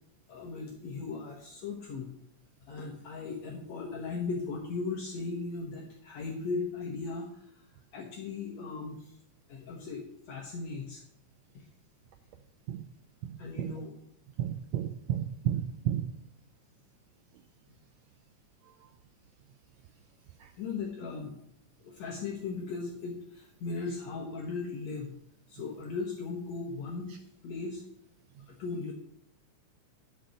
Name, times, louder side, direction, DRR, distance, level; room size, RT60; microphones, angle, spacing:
voice 1, 0.3-2.1 2.6-7.6 7.9-9.1 9.5-11.0 11.5-11.7 13.4-13.9 20.6-21.4 21.8-25.1 25.5-27.8 28.5-28.9, left 4 dB, 65° left, 0 dB, 2.2 m, -37 dB
voice 2, 13.3-13.7 14.4-16.0, right 11 dB, 90° right, 8 dB, 1.5 m, -32 dB
9.0 x 5.7 x 6.5 m, 0.72 s
omnidirectional pair, 3.6 m